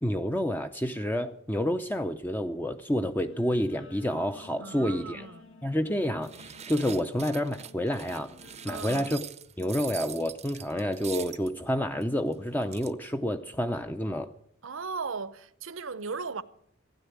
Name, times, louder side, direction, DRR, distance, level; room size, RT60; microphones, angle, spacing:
voice 1, 0.0-5.3 5.6-8.3 8.6-9.2 9.6-14.3, equal, 10° left, 0.6 m, -29 dB
Guitar, 3.2-9.1, left 3 dB, 70° left, 2.1 m, -52 dB
voice 2, 4.6-5.5 8.7-9.1 14.6-16.4, right 4 dB, 75° right, 0.8 m, -37 dB
sound 1, 6.2-11.5 12.0-12.1 12.3-12.4 12.6-12.9, right 9 dB, 35° right, 0.7 m, -43 dB
16.0 x 10.5 x 8.1 m
head